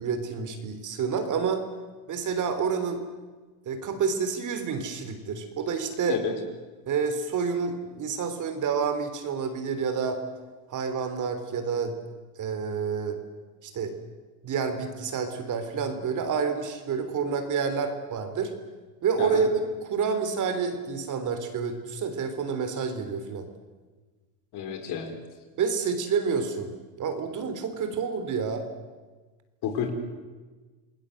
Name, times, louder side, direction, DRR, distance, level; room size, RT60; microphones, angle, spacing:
voice 1, 0.0-1.7 2.1-3.0 3.7-6.2 6.9-10.2 10.7-11.9 12.4-13.2 13.6-13.9 14.4-18.5 19.0-23.5 25.6-26.7 27.0-28.7, right 5 dB, 35° right, 8 dB, 3.6 m, -28 dB
voice 2, 24.5-25.1 29.6-29.9, left 8 dB, 50° left, 6 dB, 5.1 m, -30 dB
29.0 x 20.0 x 7.8 m, 1.3 s
supercardioid pair, 120°, 49 cm